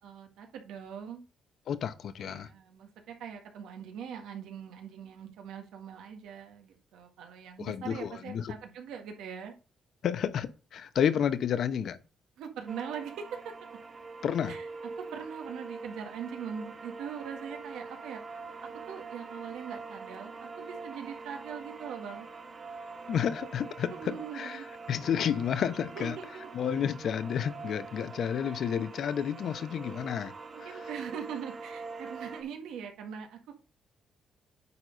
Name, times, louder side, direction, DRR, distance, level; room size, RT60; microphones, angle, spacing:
voice 1, 0.0-1.2 2.2-9.5 12.4-13.5 14.4-14.7 15.0-18.2 18.6-22.3 23.9-24.7 25.9-26.5 30.5-33.4, right 7 dB, 85° right, 1.7 m, -42 dB
voice 2, 1.7-2.5 7.6-8.5 10.0-12.0 14.2-14.6 23.1-26.1 26.5-30.3 30.6-30.7, left 8 dB, 65° left, 0.9 m, -31 dB
sound 1, 12.7-32.4, right 4 dB, 35° right, 2.1 m, -44 dB
9.5 x 4.2 x 5.3 m
cardioid pair, 90°, 0 cm